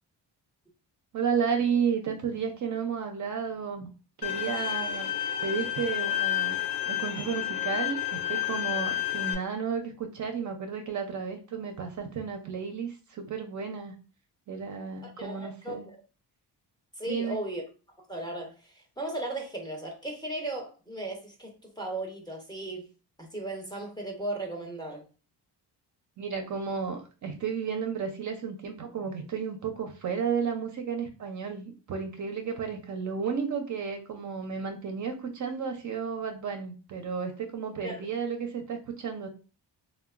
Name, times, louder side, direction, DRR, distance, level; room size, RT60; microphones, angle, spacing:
voice 1, 1.1-3.9 4.2-5.1 5.4-13.9 14.5-15.9 17.1-17.4 26.2-39.3, right 6 dB, 45° right, 0.5 m, -32 dB
Bowed string instrument, 4.2-9.3, left 12 dB, 70° left, 0.6 m, -30 dB
voice 2, 15.0-16.0 17.0-17.6 18.1-22.9 23.2-25.0 37.8-38.0, right 1 dB, 10° left, 0.5 m, -36 dB
2.9 x 2.1 x 2.3 m
cardioid pair, 110°, 42 cm